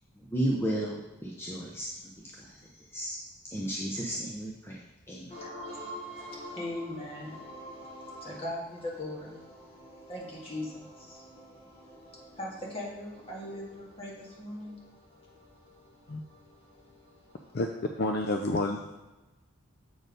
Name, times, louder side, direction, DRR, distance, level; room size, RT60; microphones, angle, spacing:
voice 1, 0.2-1.9 2.4-2.6 2.9-3.2 3.5-4.8 5.1-5.3, right 1 dB, 10° left, 0.7 m, -33 dB
voice 2, 5.3-17.5, left 1 dB, 30° left, 1.8 m, -41 dB
voice 3, 18.0-19.0, left 2 dB, 50° left, 0.5 m, -29 dB
7.7 x 4.4 x 5.1 m
head